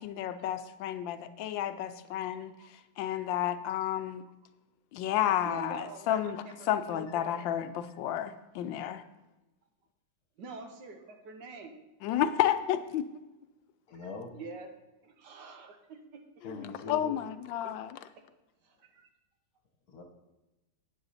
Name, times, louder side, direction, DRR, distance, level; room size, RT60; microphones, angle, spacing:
voice 1, 0.0-2.5 3.0-4.2 4.9-9.0 12.0-13.0 16.4-16.6 16.9-18.0, left 11 dB, 85° left, 10 dB, 1.3 m, -31 dB
voice 2, 2.4-2.7 5.4-7.4 10.4-11.8 13.9-14.7 15.0-16.2 17.6-17.7 18.6-19.1, right 4 dB, 70° right, 5 dB, 1.7 m, -46 dB
voice 3, 13.9-14.4 16.4-17.2 19.9-20.0, left 3 dB, 55° left, 3 dB, 1.7 m, -42 dB
9.5 x 8.5 x 4.2 m, 1.0 s
omnidirectional pair, 2.0 m